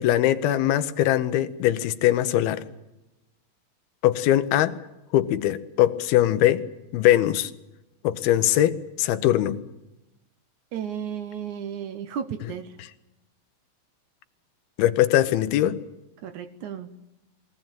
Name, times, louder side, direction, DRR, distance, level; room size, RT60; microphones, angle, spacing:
voice 1, 0.0-2.6 4.0-4.8 5.1-6.6 6.9-7.5 8.0-9.6 14.8-15.8, left 13 dB, 80° left, 11 dB, 2.7 m, -21 dB
voice 2, 10.7-12.8 16.2-16.9, right 8 dB, 75° right, 10 dB, 1.8 m, -33 dB
23.0 x 17.5 x 9.0 m, 0.99 s
omnidirectional pair, 4.5 m